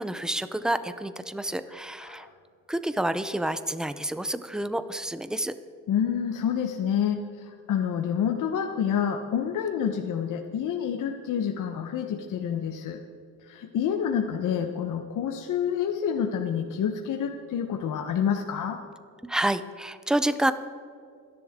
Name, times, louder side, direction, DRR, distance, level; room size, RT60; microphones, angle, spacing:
voice 1, 0.0-2.3 2.7-5.5 19.2-20.5, right 1 dB, ahead, 12 dB, 0.5 m, -28 dB
voice 2, 1.7-2.3 5.9-13.0 13.4-18.8, left 8 dB, 65° left, 4 dB, 1.0 m, -28 dB
27.0 x 10.5 x 3.7 m, 2.4 s
cardioid pair, 135°, 33 cm